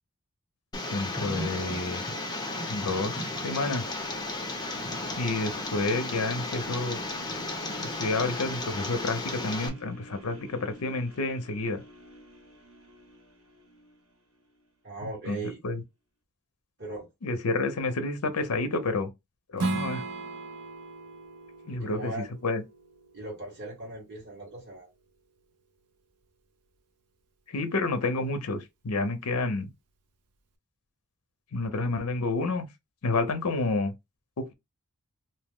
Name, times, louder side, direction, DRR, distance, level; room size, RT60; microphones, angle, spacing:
Tick, 0.7-9.7, left 2 dB, 20° left, 0.6 m, -34 dB
voice 1, 0.9-2.0 2.7-3.8 5.2-7.0 7.8-11.8 15.3-15.8 17.2-19.1 19.5-20.0 21.7-22.6 27.5-29.7 31.5-32.7 33.0-33.9, left 3 dB, 75° left, 0.6 m, -29 dB
sound 1, 2.6-14.7 15.2-15.3, right 1 dB, 65° right, 1.5 m, -50 dB
voice 2, 14.8-15.6 16.8-17.1 21.8-22.2 23.1-24.9, right 2 dB, 50° right, 1.5 m, -38 dB
Strum, 19.6-24.8, right 3 dB, 85° right, 0.6 m, -37 dB
2.7 x 2.0 x 3.5 m
head